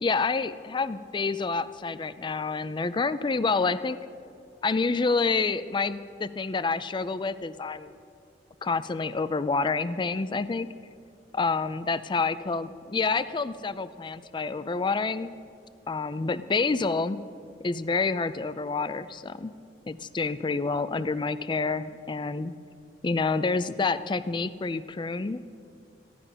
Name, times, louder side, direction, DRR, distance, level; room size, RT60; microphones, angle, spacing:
voice 1, 0.0-4.0 4.6-7.9 8.6-10.7 11.3-15.4 15.9-17.2 17.6-19.5 19.9-22.5 23.0-25.4, left 4 dB, 25° left, 15 dB, 0.4 m, -28 dB
14.5 x 12.0 x 5.5 m, 2.4 s
head